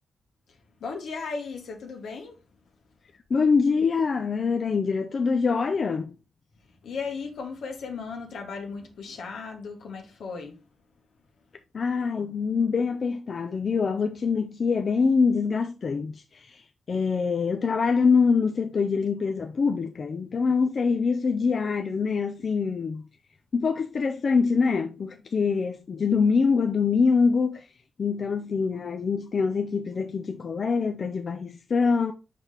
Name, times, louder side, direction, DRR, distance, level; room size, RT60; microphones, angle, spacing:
voice 1, 0.5-2.4 6.8-10.6, left 4 dB, 90° left, 1.6 m, -36 dB
voice 2, 3.3-6.2 11.7-23.0 23.5-27.7 28.0-32.1, left 5 dB, 55° left, 0.6 m, -24 dB
5.8 x 5.1 x 3.3 m
cardioid pair, 95°, 0 cm